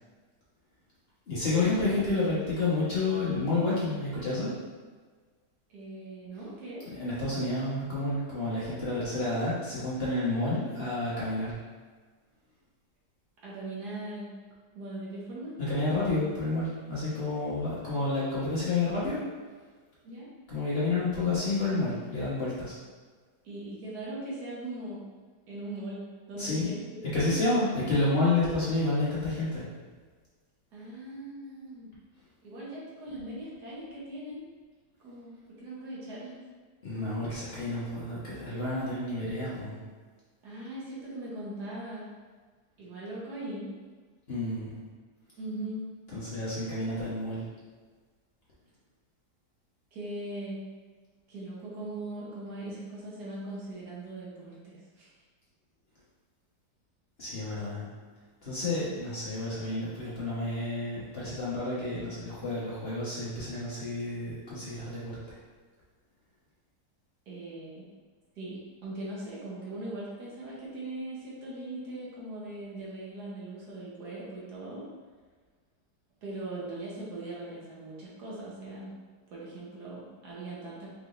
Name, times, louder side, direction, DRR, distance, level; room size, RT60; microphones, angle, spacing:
voice 1, 1.3-4.5 6.9-11.5 15.6-19.2 20.5-22.8 26.4-26.8 27.1-29.7 36.8-39.8 44.3-44.7 46.1-47.5 57.2-57.9 58.4-65.4, left 2 dB, 40° left, -9 dB, 1.2 m, -30 dB
voice 2, 5.7-6.8 13.4-14.3 14.7-15.5 20.0-20.3 23.4-25.0 25.5-26.8 27.2-27.5 30.7-31.9 32.4-34.4 35.0-36.4 40.4-42.1 42.8-43.7 45.4-45.8 49.9-50.6 51.3-55.1 58.8-59.0 67.3-67.8 68.4-74.9 76.2-78.9 79.3-80.9, right 1 dB, 70° right, -6 dB, 1.6 m, -40 dB
4.9 x 3.6 x 2.5 m, 1.5 s
omnidirectional pair, 1.8 m